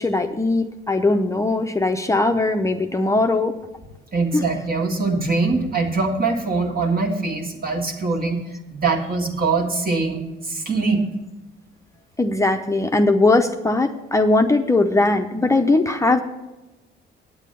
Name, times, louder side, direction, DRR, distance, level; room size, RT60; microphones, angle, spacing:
voice 1, 0.0-3.5 4.3-4.4 12.2-16.2, left 2 dB, 15° left, 5 dB, 0.6 m, -19 dB
voice 2, 4.1-11.0, right 3 dB, 50° right, 2 dB, 1.9 m, -23 dB
9.1 x 7.3 x 6.8 m, 1.1 s
cardioid pair, 90°, 20 cm